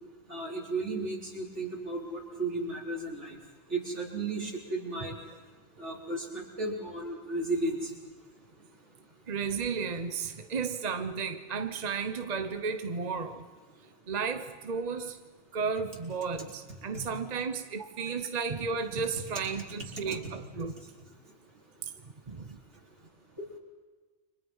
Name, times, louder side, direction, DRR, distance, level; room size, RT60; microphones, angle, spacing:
voice 1, 0.3-3.4 3.7-5.1 5.8-7.9 16.9-17.1, right 2 dB, 80° right, 4.6 m, -34 dB
voice 2, 9.3-13.5 14.1-15.2 15.5-20.8 22.3-22.6, right 5 dB, 40° right, 1.1 m, -33 dB
30.0 x 25.0 x 5.6 m
omnidirectional pair, 1.2 m